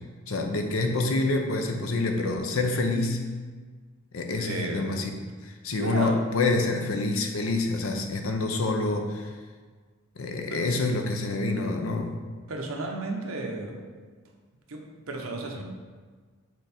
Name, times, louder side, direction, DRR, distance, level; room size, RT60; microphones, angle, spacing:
voice 1, 0.3-3.2 4.1-5.1 5.4-9.3 10.2-12.2, left 2 dB, 80° left, 4 dB, 0.7 m, -27 dB
voice 2, 4.4-4.9 5.7-6.2 6.5-6.9 10.5-10.7 12.5-13.8 14.7-15.6, right 2 dB, 85° right, 1 dB, 0.9 m, -33 dB
6.3 x 3.5 x 4.3 m, 1.5 s
head